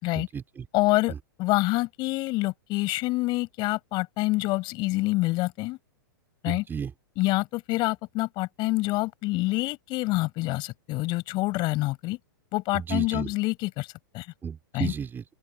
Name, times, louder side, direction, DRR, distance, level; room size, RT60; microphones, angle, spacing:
voice 1, 0.1-0.7 1.1-1.2 6.5-6.9 12.7-13.3 14.4-15.2, right 7 dB, 15° right, 2.9 m, -33 dB
voice 2, 0.7-5.8 6.4-6.6 7.2-12.2 12.5-14.3 14.7-14.9, left 21 dB, 40° left, 6.9 m, -27 dB
open air
hypercardioid pair, 130°, 12 cm